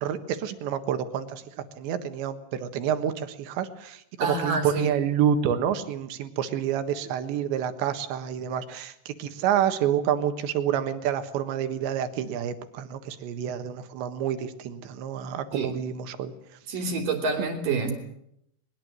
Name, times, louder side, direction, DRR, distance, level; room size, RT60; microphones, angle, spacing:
voice 1, 0.0-16.3, right 9 dB, 75° right, 9 dB, 3.7 m, -28 dB
voice 2, 4.2-4.9 15.5-15.7 16.7-17.9, right 4 dB, 50° right, 4 dB, 4.1 m, -27 dB
22.0 x 21.5 x 7.8 m, 0.75 s
omnidirectional pair, 5.4 m